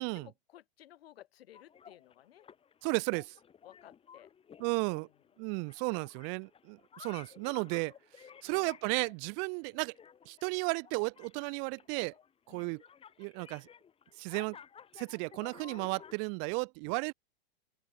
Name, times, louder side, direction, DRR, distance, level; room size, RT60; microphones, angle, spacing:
voice 1, 0.1-2.5 3.6-4.3 4.6-5.1 8.5-8.7 12.5-12.8, left 12 dB, 70° left, 7.4 m, -57 dB
sound 1, 1.5-16.2, left 7 dB, 20° left, 5.4 m, -55 dB
voice 2, 2.8-3.3 4.6-5.1 5.4-7.9 8.4-9.9 10.3-12.1 12.5-12.8 13.2-13.7 14.2-14.6 15.0-17.1, right 40 dB or more, 35° right, 0.7 m, -34 dB
open air
hypercardioid pair, 135°, 31 cm